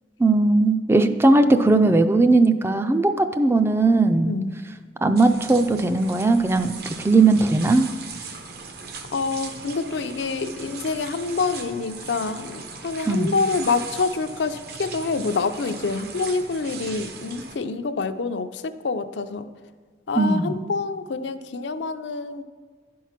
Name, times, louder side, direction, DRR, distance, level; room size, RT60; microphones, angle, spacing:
voice 1, 0.2-4.3 5.0-7.9 13.1-13.3 20.2-20.5, right 2 dB, 15° right, 8 dB, 0.3 m, -18 dB
voice 2, 4.3-4.6 9.1-19.5 20.1-22.4, left 4 dB, 80° left, 10 dB, 0.5 m, -27 dB
sound 1, 5.2-17.6, right 4 dB, 60° right, 0.8 m, -38 dB
11.0 x 4.7 x 5.8 m, 1.5 s
head